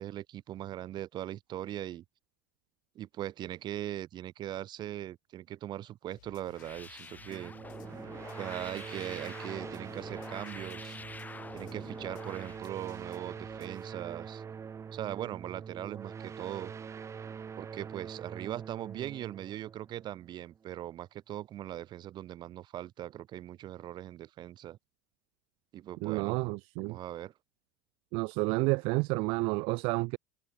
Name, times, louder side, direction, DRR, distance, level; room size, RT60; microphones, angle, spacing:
voice 1, 0.0-2.0 3.0-7.5 8.4-11.0 11.5-14.4 14.9-16.7 17.6-24.8 25.7-26.4 26.8-27.3, right 12 dB, 50° right, 2.1 m, -40 dB
sound 1, 6.1-13.8, left 17 dB, 85° left, 5.4 m, -60 dB
sound 2, 6.5-12.6, left 3 dB, 15° left, 2.6 m, -47 dB
sound 3, 7.3-20.6, right 6 dB, 30° right, 2.3 m, -44 dB
voice 2, 26.0-27.0 28.1-30.2, right 27 dB, 65° right, 0.7 m, -30 dB
supercardioid pair, 95°, 10 cm